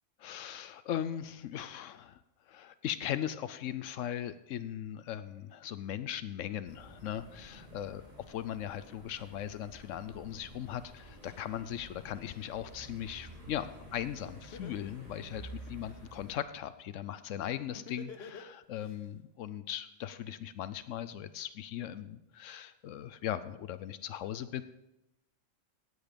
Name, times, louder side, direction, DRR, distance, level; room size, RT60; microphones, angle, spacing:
voice 1, 0.2-2.2 2.5-8.0 8.3-24.6, left 10 dB, 80° left, 13 dB, 0.9 m, -39 dB
sound 1, 6.7-16.4, right 1 dB, 30° right, 2.2 m, -51 dB
Laughter, 14.5-16.0 17.7-18.9, left 5 dB, 55° left, 1.2 m, -47 dB
17.0 x 8.2 x 5.1 m, 0.91 s
omnidirectional pair, 1.3 m